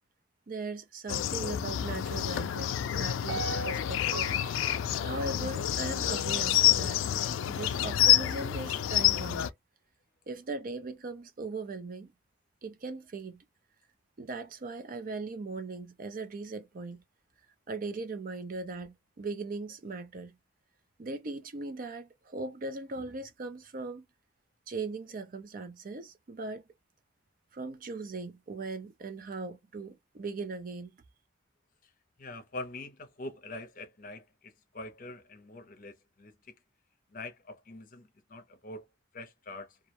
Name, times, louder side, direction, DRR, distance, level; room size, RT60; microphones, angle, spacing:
voice 1, 0.5-4.3 5.0-7.0 7.5-9.5 10.3-12.1 12.6-13.5 14.2-17.0 17.7-20.3 21.0-24.0 24.7-26.6 27.5-30.9, right 3 dB, 45° right, 0.4 m, -39 dB
sound 1, 1.1-9.5, left 11 dB, 85° left, 0.3 m, -28 dB
Piano, 3.3-6.4 6.8-6.9, right 5 dB, 85° right, 0.7 m, -42 dB
voice 2, 32.2-36.6 37.1-38.9 39.1-39.8, left 2 dB, 45° left, 0.6 m, -44 dB
2.3 x 2.1 x 2.8 m
head